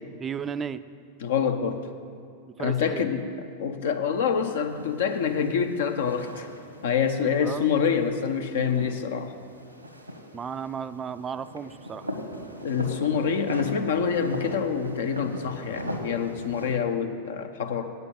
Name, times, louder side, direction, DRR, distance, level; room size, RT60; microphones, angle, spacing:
voice 1, 0.2-0.8 2.6-3.1 7.4-7.7 10.3-12.1, right 7 dB, 20° right, 13 dB, 0.4 m, -34 dB
voice 2, 1.2-1.8 2.6-6.5 6.8-9.3 12.6-17.9, left 7 dB, 60° left, 7 dB, 0.6 m, -26 dB
sound 1, 4.2-16.7, equal, 90° right, 1.1 m, -39 dB
8.9 x 6.7 x 8.7 m, 2.4 s
figure-of-eight pair, 90°, 0 cm